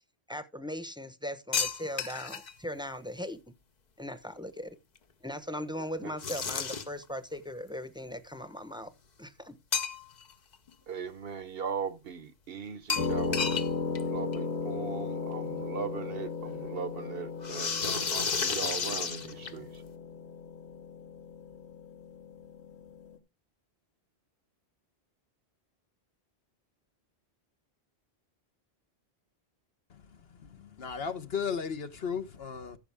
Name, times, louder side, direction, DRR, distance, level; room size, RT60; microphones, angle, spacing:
voice 1, 0.3-3.4 4.0-4.8 5.2-8.9 9.2-9.6, equal, 5° right, 0.8 m, -39 dB
sound 1, 1.5-2.5 6.2-7.0 9.7-10.3 10.7-10.8 12.9-13.7 13.9-14.0 14.3-14.4 15.6-15.7 17.4-19.8, left 5 dB, 45° left, 0.9 m, -32 dB
voice 2, 10.9-13.7 14.0-19.8, right 6 dB, 65° right, 1.0 m, -39 dB
sound 2, 13.0-23.2, left 4 dB, 80° left, 2.0 m, -36 dB
voice 3, 30.4-32.8, left 6 dB, 65° left, 1.3 m, -35 dB
14.5 x 6.3 x 3.5 m
omnidirectional pair, 1.1 m